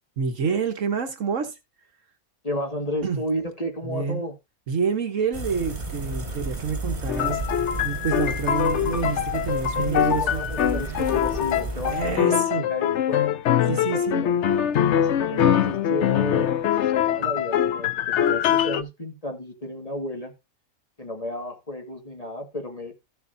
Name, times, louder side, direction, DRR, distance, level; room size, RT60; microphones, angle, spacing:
voice 1, 0.2-1.6 3.0-3.2 3.8-4.2 4.7-7.4 7.8-10.4 11.9-12.6 13.7-14.3, right 6 dB, 65° right, 1.5 m, -27 dB
voice 2, 2.4-4.3 9.8-13.2 13.9-14.3 14.9-17.9 18.2-20.3 21.0-22.9, left 1 dB, 25° left, 1.9 m, -33 dB
sound 1, 5.3-12.2, right 2 dB, 30° right, 1.9 m, -33 dB
sound 2, 7.1-18.8, left 10 dB, 60° left, 0.9 m, -23 dB
14.0 x 6.8 x 2.7 m
omnidirectional pair, 1.5 m